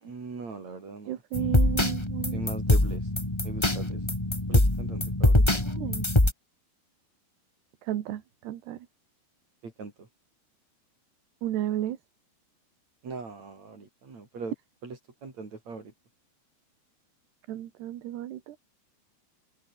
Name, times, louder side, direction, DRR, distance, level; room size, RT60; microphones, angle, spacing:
voice 1, 0.0-1.2 2.3-3.0 3.4-4.0 4.5-5.4 9.6-10.1 13.0-14.5 14.8-15.9, right 4 dB, 40° right, 6.0 m, -40 dB
voice 2, 1.1-2.4 5.4-6.1 7.9-8.9 11.4-12.0 17.5-18.6, right 12 dB, 75° right, 3.7 m, -33 dB
sound 1, 1.3-6.3, left 1 dB, 10° left, 1.8 m, -24 dB
open air
omnidirectional pair, 5.0 m